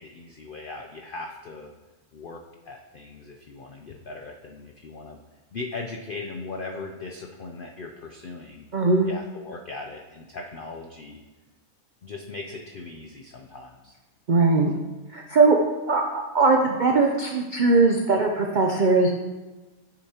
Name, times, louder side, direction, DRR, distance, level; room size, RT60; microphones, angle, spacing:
voice 1, 0.0-1.7 2.1-5.2 5.5-8.7 9.0-11.2 12.0-14.0, left 3 dB, 70° left, 2 dB, 0.5 m, -39 dB
voice 2, 8.7-9.1 14.3-14.7 15.1-15.6 15.9-19.1, right 3 dB, 70° right, 2 dB, 0.4 m, -20 dB
8.9 x 6.9 x 2.8 m, 1.2 s
omnidirectional pair, 1.5 m